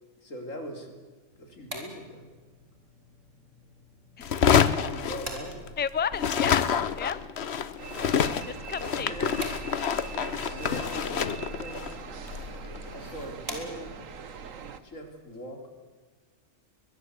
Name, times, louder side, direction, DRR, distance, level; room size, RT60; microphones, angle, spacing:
voice 1, 0.2-1.0 1.4-2.3 4.7-5.7 8.9-9.4 10.1-11.8 12.9-14.1 14.8-15.7, equal, 90° left, 5 dB, 3.9 m, -41 dB
sound 1, 1.3-14.2, right 1 dB, 75° right, 4.4 m, -47 dB
sound 2, 4.2-5.8 6.1-13.3, left 7 dB, 60° left, 1.2 m, -27 dB
voice 2, 5.8-6.6 6.9-7.2 8.4-9.3, left 7 dB, 15° left, 17 dB, 0.4 m, -31 dB
sound 3, 7.8-14.8, right 6 dB, 90° right, 1.6 m, -42 dB
23.5 x 22.0 x 8.2 m, 1.4 s
omnidirectional pair, 1.3 m